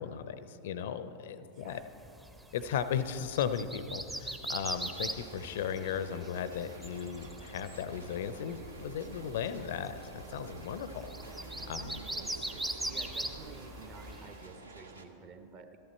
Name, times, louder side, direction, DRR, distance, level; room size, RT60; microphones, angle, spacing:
voice 1, 0.0-1.8 2.5-11.4 11.7-12.0, left 8 dB, 55° left, 12 dB, 0.5 m, -36 dB
voice 2, 1.5-1.9 11.7-15.8, right 5 dB, 35° right, 7 dB, 0.9 m, -52 dB
sound 1, 1.9-14.4, right 1 dB, 10° right, 0.6 m, -42 dB
sound 2, 4.6-15.0, right 3 dB, 75° right, 0.8 m, -51 dB
sound 3, 8.2-13.6, right 6 dB, 60° right, 0.4 m, -52 dB
13.5 x 11.0 x 4.4 m, 2.9 s
figure-of-eight pair, 90°, 0 cm